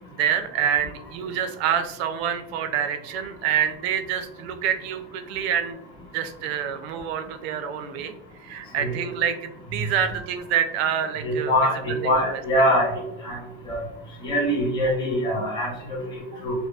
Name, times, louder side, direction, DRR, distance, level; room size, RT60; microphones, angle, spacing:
voice 1, 0.1-8.1 8.4-12.4, right 8 dB, 85° right, 8 dB, 0.6 m, -27 dB
voice 2, 11.2-12.9 13.2-13.4 13.7-13.8 14.2-16.5, equal, 15° left, -5 dB, 1.0 m, -23 dB
5.0 x 2.1 x 2.3 m, 0.85 s
cardioid pair, 170°, 31 cm